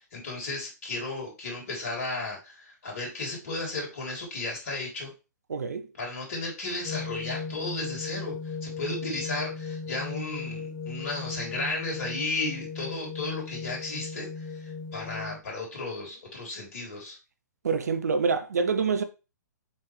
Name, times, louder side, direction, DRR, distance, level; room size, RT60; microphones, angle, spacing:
voice 1, 0.1-5.1 6.0-17.2, left 2 dB, 50° left, 3.2 m, -34 dB
voice 2, 5.5-5.9 17.6-19.0, right 5 dB, 60° right, 0.9 m, -26 dB
sound 1, 6.8-15.4, left 4 dB, 20° left, 1.6 m, -37 dB
7.2 x 4.5 x 3.3 m
figure-of-eight pair, 120°, 10 cm